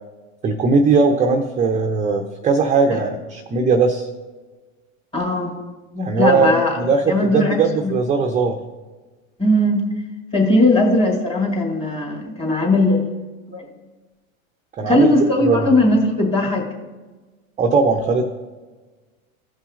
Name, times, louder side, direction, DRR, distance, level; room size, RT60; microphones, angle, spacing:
voice 1, 0.4-4.1 5.9-7.0 7.3-8.6 14.8-15.1 15.4-15.7 17.6-18.2, right 4 dB, 20° right, 3 dB, 0.6 m, -18 dB
voice 2, 5.1-5.5 6.2-6.7 7.1-7.9 9.4-9.9 10.3-13.0 13.5-13.7 14.9-16.7, left 1 dB, 15° left, -1 dB, 2.6 m, -18 dB
16.5 x 5.5 x 2.5 m, 1.3 s
hypercardioid pair, 105°, 41 cm